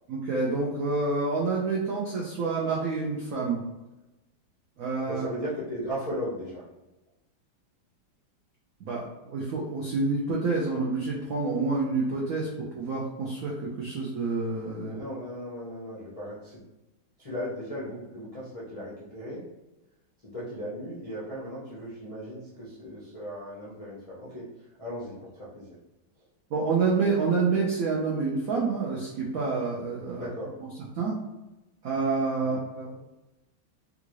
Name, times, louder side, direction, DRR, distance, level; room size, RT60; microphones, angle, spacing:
voice 1, 0.1-3.6 4.8-5.3 8.8-12.5 12.7-14.9 26.5-30.3 30.6-30.7 30.9-31.1 31.8-33.0, right 4 dB, 85° right, -3 dB, 0.7 m, -28 dB
voice 2, 5.1-6.6 14.8-16.6 17.2-19.4 20.2-24.5 24.8-25.7 30.1-30.5 32.4-32.6, equal, 65° left, -9 dB, 0.3 m, -37 dB
3.7 x 2.4 x 3.0 m, 1.0 s
omnidirectional pair, 2.2 m